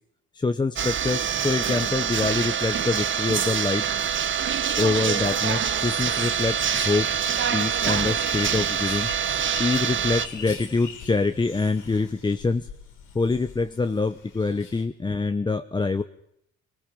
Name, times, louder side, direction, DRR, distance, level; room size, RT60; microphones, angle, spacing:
voice 1, 0.3-3.9 4.8-7.1 7.5-9.1 9.6-12.7 13.1-16.0, left 3 dB, 15° left, 9 dB, 0.8 m, -25 dB
sound 1, 0.8-10.3, right 8 dB, 40° right, 1.4 m, -25 dB
sound 2, 5.8-14.8, left 6 dB, 80° left, 5.8 m, -41 dB
29.5 x 20.0 x 5.3 m, 0.71 s
cardioid pair, 155°, 31 cm